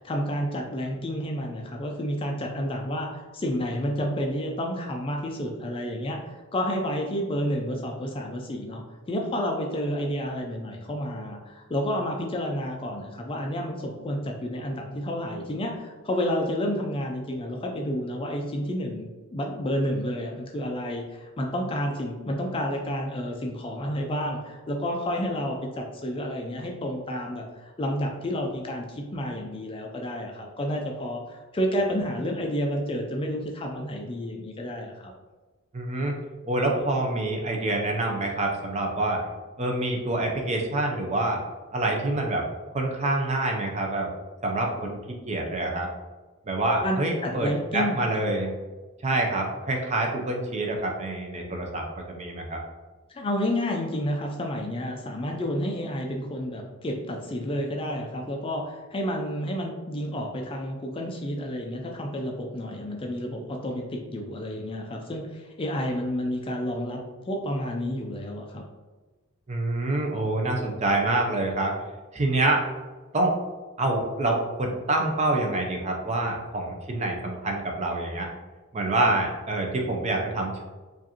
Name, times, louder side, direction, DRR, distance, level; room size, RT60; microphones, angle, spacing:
voice 1, 0.0-8.8 9.1-35.1 46.8-47.0 47.2-48.3 53.2-68.6, equal, 25° left, 1 dB, 0.4 m, -30 dB
voice 2, 35.7-36.2 36.5-39.2 39.6-41.4 41.7-42.4 42.7-44.1 44.4-45.0 45.3-45.9 46.5-48.5 49.0-52.6 69.5-71.7 72.1-72.6 73.1-73.3 73.8-78.3 78.7-80.6, right 2 dB, 30° right, 1 dB, 0.5 m, -26 dB
4.8 x 2.5 x 2.8 m, 1.3 s
head